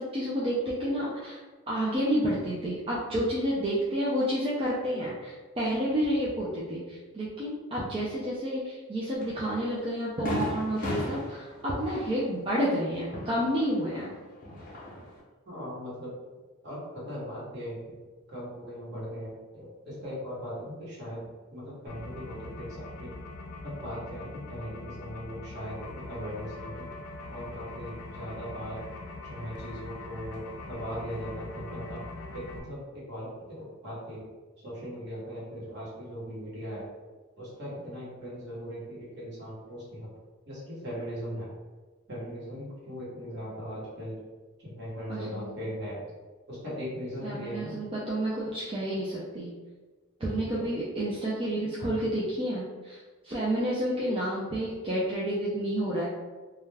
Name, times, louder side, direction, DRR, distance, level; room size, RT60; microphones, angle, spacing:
voice 1, 0.0-1.4 1.7-14.1 45.1-45.6 47.2-49.5 50.2-53.0 53.2-56.1, equal, 25° right, -7 dB, 0.4 m, -30 dB
Fireworks, 9.2-9.3 9.8-9.9 10.3-14.0 14.3-15.2, left 1 dB, 40° left, 0.6 m, -36 dB
voice 2, 15.4-16.1 16.6-18.0 18.3-23.1 23.6-26.9 27.3-28.8 29.2-32.0 32.3-34.2 34.6-36.9 37.4-40.1 40.5-41.5 42.1-44.2 44.6-46.0 46.5-47.8 50.5-50.7, equal, 55° right, -7 dB, 1.1 m, -39 dB
sound 1, 21.9-32.6, left 2 dB, 90° left, 0.4 m, -42 dB
2.3 x 2.2 x 3.2 m, 1.3 s
head